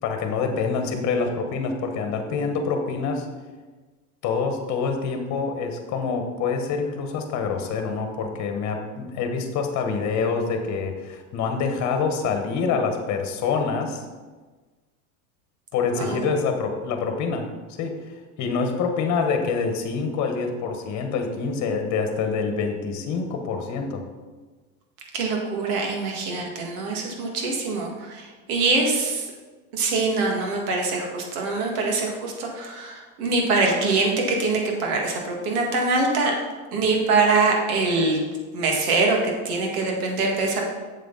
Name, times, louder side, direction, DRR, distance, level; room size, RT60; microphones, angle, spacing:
voice 1, 0.0-3.3 4.2-14.0 15.7-17.5 17.8-18.1 18.4-24.1, left 5 dB, 40° left, 5 dB, 1.4 m, -26 dB
voice 2, 25.1-29.3 29.7-36.3 36.7-38.2 38.5-40.6, right 3 dB, 75° right, 0 dB, 2.3 m, -24 dB
7.8 x 7.2 x 4.1 m, 1.3 s
supercardioid pair, 135°, 43 cm